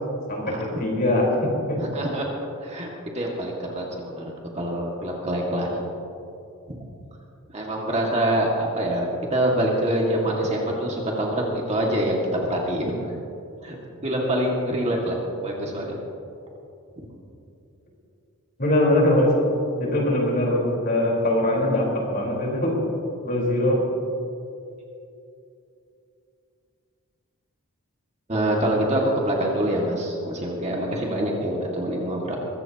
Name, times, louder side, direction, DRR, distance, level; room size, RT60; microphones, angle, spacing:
voice 1, 0.3-1.8 18.6-19.3 19.8-21.9 22.1-22.8 23.2-23.8, left 1 dB, 45° left, -3 dB, 4.3 m, -22 dB
voice 2, 1.8-2.3 2.6-2.9 3.1-5.8 7.5-12.9 13.6-13.8 14.0-15.2 15.4-15.9 17.0-17.1 28.3-32.4, right 1 dB, 30° right, -2 dB, 2.0 m, -25 dB
22.0 x 15.5 x 3.0 m, 2.7 s
head